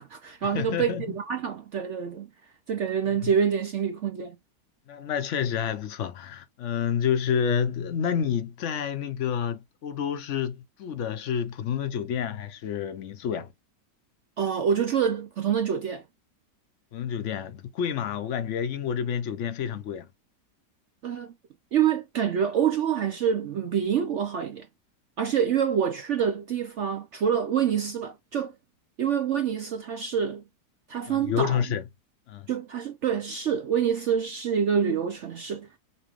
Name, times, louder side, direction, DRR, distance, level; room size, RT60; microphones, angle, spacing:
voice 1, 0.0-2.3 2.7-4.4 14.4-16.0 21.0-21.3 21.7-24.7 25.2-28.5 29.0-30.4 30.9-31.6 32.5-35.8, right 8 dB, 65° right, 0.7 m, -26 dB
voice 2, 0.5-1.2 3.2-3.3 4.9-13.5 16.9-20.1 31.1-31.8 32.3-32.5, left 8 dB, 60° left, 0.8 m, -29 dB
5.7 x 2.2 x 3.0 m
omnidirectional pair, 1.8 m